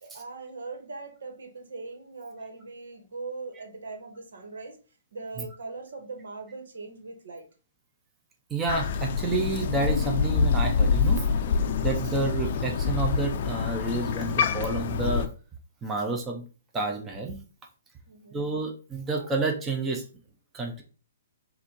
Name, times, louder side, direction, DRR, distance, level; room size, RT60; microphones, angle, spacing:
voice 1, 0.0-4.8 5.1-7.5 18.1-18.4, right 3 dB, 80° right, 1.4 m, -40 dB
voice 2, 8.5-11.2 11.8-15.3 15.8-16.5 16.7-17.4 18.3-20.0 20.5-20.8, right 3 dB, 10° right, 0.6 m, -29 dB
Crow, 8.7-15.3, left 5 dB, 45° left, 0.5 m, -26 dB
4.2 x 2.6 x 4.4 m
hypercardioid pair, 160°, 0 cm